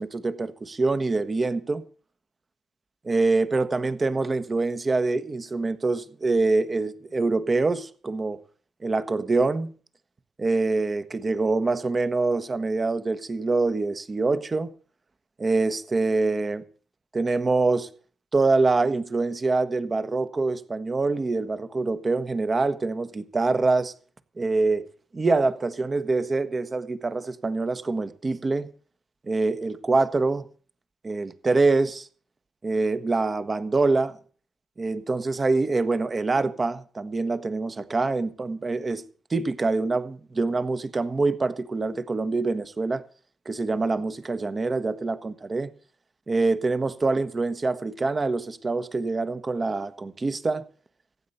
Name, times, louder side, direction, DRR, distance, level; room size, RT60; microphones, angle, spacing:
voice 1, 0.0-1.8 3.0-8.4 8.8-9.7 10.4-14.7 15.4-16.6 17.1-17.9 18.3-23.9 24.4-24.9 25.1-28.7 29.3-30.5 31.0-32.1 32.6-34.2 34.8-39.0 39.3-43.0 43.4-45.7 46.3-50.6, right 3 dB, 40° right, 1.3 m, -25 dB
15.0 x 8.8 x 6.8 m
hypercardioid pair, 40°, 0 cm